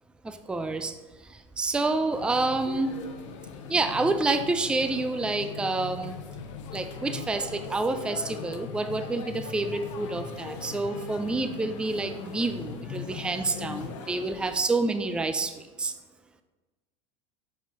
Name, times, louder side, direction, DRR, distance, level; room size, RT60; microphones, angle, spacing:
voice 1, 0.2-0.9 1.2-3.0 3.7-6.1 6.7-15.9, right 3 dB, 5° right, 9 dB, 0.4 m, -28 dB
sound 1, 2.1-14.6, left 6 dB, 75° left, 0.8 m, -39 dB
6.1 x 5.0 x 3.8 m, 1.3 s
hypercardioid pair, 105°, 16 cm